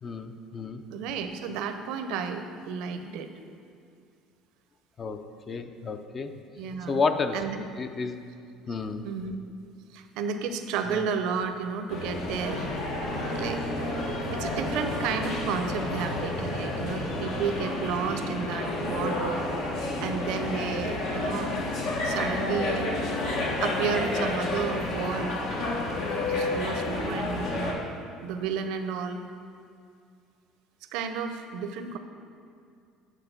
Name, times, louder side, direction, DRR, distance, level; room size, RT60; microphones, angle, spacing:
voice 1, 0.0-0.8 5.0-5.2 5.5-6.3 6.9-7.4 7.8-8.2 8.7-9.0 10.9-11.0, left 4 dB, 35° left, 8 dB, 0.5 m, -30 dB
voice 2, 0.9-3.3 6.6-7.0 7.3-7.6 9.0-9.4 9.9-12.7 13.2-14.0 14.3-21.5 22.0-22.9 23.6-25.4 26.3-27.8 28.2-29.2 30.9-32.0, right 6 dB, 75° right, 7 dB, 0.5 m, -32 dB
sound 1, 11.9-27.7, left 2 dB, 70° left, 1.2 m, -30 dB
9.1 x 3.6 x 5.8 m, 2.4 s
supercardioid pair, 100°, 0 cm